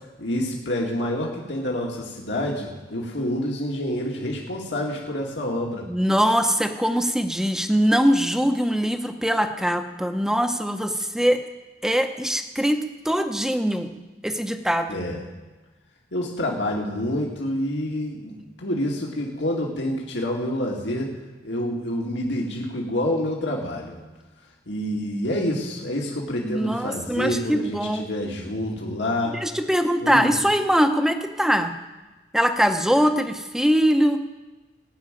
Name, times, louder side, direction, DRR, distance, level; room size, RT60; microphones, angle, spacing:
voice 1, 0.2-5.8 14.9-15.2 16.1-21.1 21.4-24.0 24.7-29.4 30.0-30.3, left 1 dB, 75° left, -2 dB, 2.2 m, -27 dB
voice 2, 5.9-11.4 11.8-13.9 14.2-15.0 26.4-28.1 29.3-31.7 32.3-34.2, equal, 5° right, 7 dB, 0.9 m, -22 dB
17.5 x 6.4 x 9.1 m, 1.2 s
head